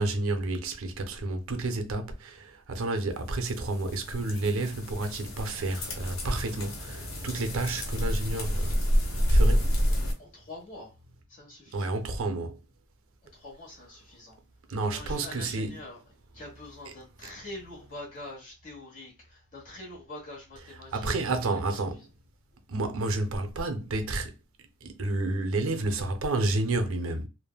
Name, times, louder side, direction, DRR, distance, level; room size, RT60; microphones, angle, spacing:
voice 1, 0.0-8.8 9.3-9.7 11.7-12.6 14.7-15.8 20.9-22.0 22.7-24.3 24.8-27.3, right 2 dB, 75° right, 0.5 m, -30 dB
sound 1, 3.3-10.1, equal, 70° left, 0.8 m, -28 dB
voice 2, 10.2-10.9 11.3-11.9 13.3-14.4 14.8-22.1, left 2 dB, 40° left, 1.2 m, -45 dB
3.3 x 2.1 x 2.3 m
head